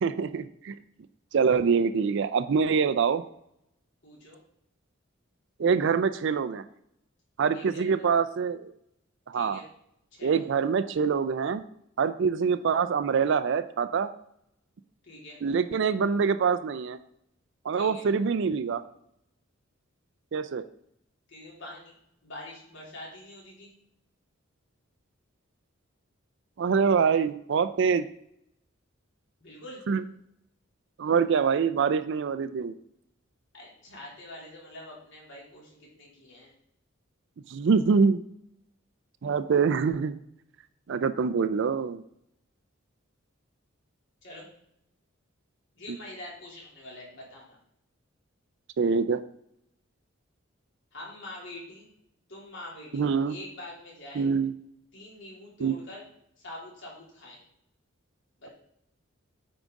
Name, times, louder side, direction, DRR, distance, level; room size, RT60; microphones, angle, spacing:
voice 1, 0.0-0.8 1.3-3.2 5.6-6.6 7.4-8.7 9.3-9.6 10.2-11.6 12.0-14.1 15.4-17.0 17.6-18.8 20.3-20.6 26.6-28.1 29.9-30.0 31.0-32.7 37.5-38.2 39.2-40.2 40.9-42.0 48.8-49.2 52.9-53.3 54.2-54.5 55.6-55.7, right 5 dB, 60° right, 12 dB, 0.4 m, -25 dB
voice 2, 4.0-4.4 7.5-8.0 9.3-9.7 10.1-10.5 15.0-15.4 17.7-18.0 21.3-22.0 22.2-23.7 29.4-29.8 33.5-36.5 44.2-44.5 45.7-47.6 50.9-51.9 52.3-54.3 54.9-56.0 56.4-57.4 58.4-58.5, left 1 dB, 65° left, -4 dB, 2.8 m, -45 dB
9.0 x 4.9 x 3.7 m, 0.76 s
head